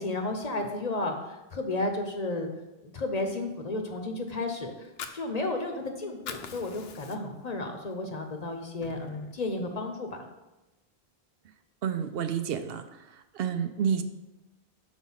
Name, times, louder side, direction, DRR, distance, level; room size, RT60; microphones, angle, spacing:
voice 1, 0.0-2.5 2.8-4.9 5.1-10.1, left 2 dB, 45° left, 4 dB, 0.8 m, -32 dB
Fire, 4.7-5.9 6.1-7.5 7.9-8.0 8.4-9.4, left 6 dB, 75° left, 0.9 m, -42 dB
voice 2, 11.8-12.8 13.3-14.0, right 7 dB, 70° right, 9 dB, 0.8 m, -29 dB
6.2 x 4.8 x 5.6 m, 1.0 s
omnidirectional pair, 1.0 m